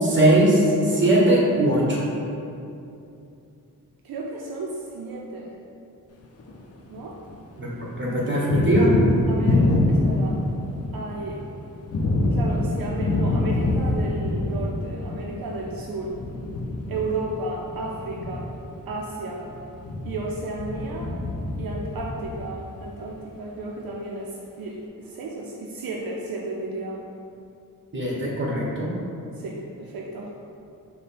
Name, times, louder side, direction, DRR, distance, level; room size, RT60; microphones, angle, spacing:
voice 1, 0.0-2.0 7.6-7.7 8.0-9.0 27.9-28.9, right 1 dB, 30° right, -5 dB, 1.1 m, -20 dB
voice 2, 4.0-5.5 6.9-7.2 9.3-10.4 10.9-11.5 12.3-16.2 16.9-18.5 18.9-19.5 20.0-21.1 21.6-27.0 29.4-30.3, right 2 dB, 75° right, -2 dB, 0.5 m, -33 dB
Thunder, 6.2-7.4 7.7-23.0, left 2 dB, 45° left, 0.5 m, -26 dB
4.9 x 2.2 x 4.2 m, 2.7 s
wide cardioid pair, 85°, 36 cm